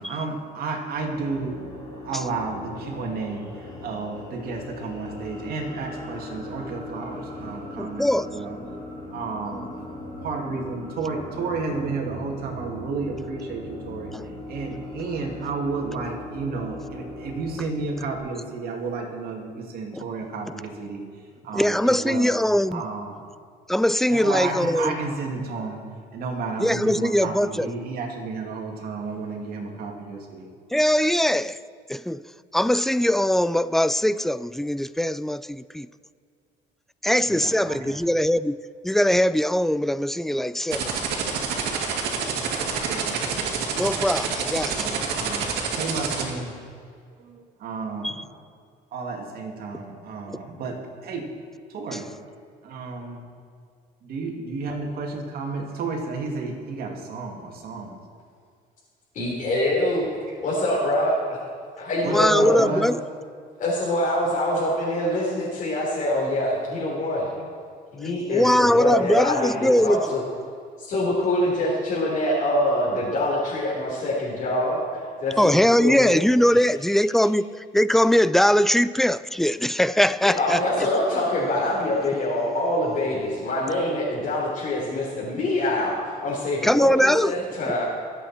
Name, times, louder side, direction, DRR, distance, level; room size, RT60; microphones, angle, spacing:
voice 1, 0.0-1.6 1.9-8.6 9.1-9.9 10.2-14.1 14.5-21.0 21.4-22.3 22.7-23.2 24.1-25.8 26.1-30.5 37.2-38.0 42.5-43.2 44.7-46.5 47.2-48.2 48.9-51.3 51.7-52.1 52.6-53.2 54.0-58.0 60.3-60.4 62.0-62.8, right 4 dB, 65° right, 2.6 m, -32 dB
sound 1, 0.9-18.2, left 1 dB, 25° left, 3.8 m, -39 dB
voice 2, 7.8-8.3 14.1-14.2 19.9-20.0 20.5-20.6 21.5-22.8 23.7-25.0 26.6-27.7 30.7-31.6 31.9-32.2 32.5-35.9 37.0-38.6 38.8-41.0 43.8-45.0 48.0-48.2 51.9-52.0 62.0-63.0 68.3-70.1 75.4-80.9 86.6-87.3 87.6-87.7, equal, ahead, 0.3 m, -21 dB
sound 2, 40.7-46.2, right 6 dB, 80° right, 2.4 m, -27 dB
voice 3, 59.1-60.1 60.4-61.4 61.8-62.6 63.6-67.3 67.9-70.2 70.8-76.2 76.5-76.6 80.4-87.8, left 1 dB, 50° left, 3.9 m, -25 dB
24.0 x 8.2 x 4.4 m
cardioid pair, 110°, 17 cm